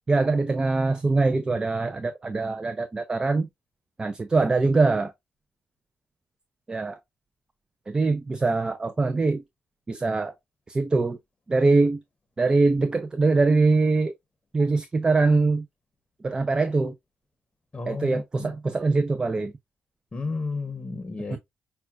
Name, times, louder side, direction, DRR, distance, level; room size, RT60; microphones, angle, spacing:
voice 1, 0.1-3.5 4.0-5.1 6.7-7.0 7.9-9.4 9.9-10.3 10.7-11.2 11.5-12.0 12.4-14.1 14.5-15.7 16.2-16.9 17.9-19.5 21.3-21.4, right 3 dB, 25° right, 0.4 m, -23 dB
voice 2, 17.7-18.5 20.1-21.4, left 4 dB, 25° left, 0.8 m, -32 dB
5.5 x 2.2 x 2.3 m
cardioid pair, 80°, 3 cm